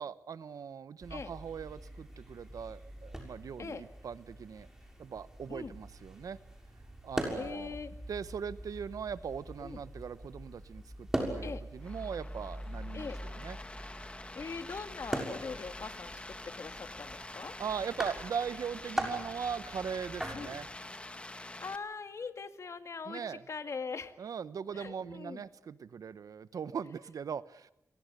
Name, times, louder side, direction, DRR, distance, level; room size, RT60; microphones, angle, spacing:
voice 1, 0.0-4.7 5.0-6.4 7.0-7.8 8.1-13.6 17.6-20.7 23.1-23.4 24.2-27.7, right 7 dB, 85° right, 15 dB, 1.0 m, -40 dB
sound 1, 1.0-20.8, right 1 dB, 10° right, 6.6 m, -42 dB
voice 2, 7.4-7.9 9.6-9.8 11.4-11.7 12.9-13.2 14.4-17.5 20.3-20.6 21.4-24.1 24.7-25.4, left 5 dB, 55° left, 9 dB, 2.0 m, -41 dB
sound 2, 11.8-21.8, left 2 dB, 20° left, 2.1 m, -46 dB
29.5 x 23.0 x 6.8 m, 0.88 s
wide cardioid pair, 110°, 6 cm